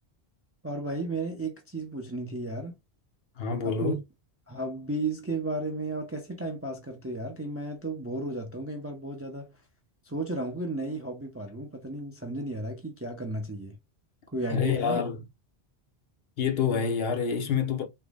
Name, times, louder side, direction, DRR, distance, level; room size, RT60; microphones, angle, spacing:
voice 1, 0.6-2.8 3.6-4.0 4.5-9.5 10.1-13.8 14.3-15.0, right 2 dB, 20° right, 0.5 m, -34 dB
voice 2, 3.4-4.0 14.5-15.2 16.4-17.9, left 6 dB, 65° left, 0.9 m, -27 dB
3.7 x 2.1 x 3.3 m
omnidirectional pair, 1.1 m